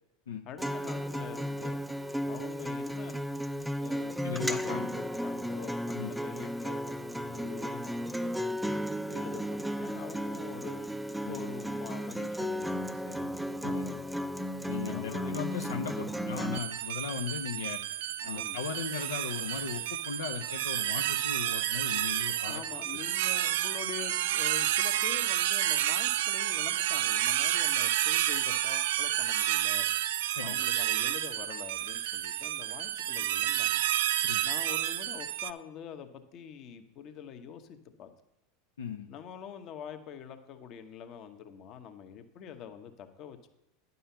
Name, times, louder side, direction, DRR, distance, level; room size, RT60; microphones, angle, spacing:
voice 1, 0.4-1.8 2.2-3.2 3.7-8.4 9.1-10.8 11.3-14.1 14.9-15.3 18.2-18.6 22.4-29.9 30.4-33.8 34.4-38.1 39.1-43.5, left 8 dB, 50° left, 7 dB, 1.0 m, -45 dB
Acoustic guitar, 0.6-16.6, equal, ahead, 0.4 m, -34 dB
voice 2, 4.2-5.0 5.9-6.1 11.2-11.4 13.6-13.9 14.7-17.8 18.2-22.6 30.4-30.6 34.2-34.4 38.8-39.1, left 6 dB, 80° left, 4 dB, 0.6 m, -37 dB
sound 1, 16.5-35.5, right 13 dB, 70° right, 0.3 m, -30 dB
10.5 x 5.5 x 5.6 m, 0.89 s
hypercardioid pair, 90°, 0 cm